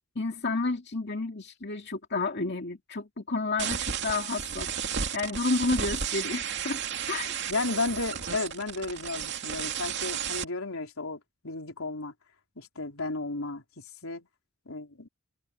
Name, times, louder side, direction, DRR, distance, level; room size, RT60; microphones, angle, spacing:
voice 1, 0.2-4.7 5.1-6.8 7.1-7.3, left 3 dB, 55° left, 2.4 m, -30 dB
sound 1, 3.6-10.4, right 7 dB, 55° right, 2.6 m, -33 dB
voice 2, 7.5-12.1 12.6-14.3 14.7-15.1, left 3 dB, 85° left, 4.1 m, -34 dB
head